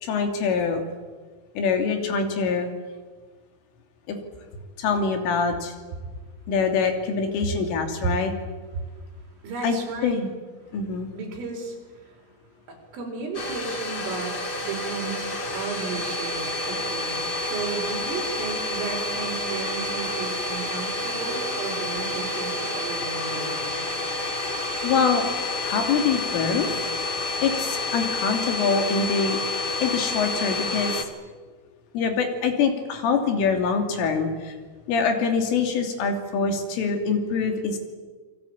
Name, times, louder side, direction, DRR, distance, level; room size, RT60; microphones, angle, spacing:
voice 1, 0.0-0.8 1.6-2.7 4.1-4.2 4.8-5.7 6.5-8.3 9.6-9.8 10.0-10.3 10.7-11.1 24.8-25.2 25.6-26.7 27.4-29.4 29.8-31.1 31.9-34.6 34.9-37.8, left 5 dB, 80° left, 4 dB, 5.4 m, -24 dB
voice 2, 9.4-10.3 11.1-12.2 12.7-24.0, right 5 dB, 80° right, 1 dB, 7.6 m, -34 dB
Domestic sounds home sounds, 13.3-31.0, left 2 dB, 55° left, 1.1 m, -29 dB
27.0 x 23.0 x 8.9 m, 1.4 s
omnidirectional pair, 5.7 m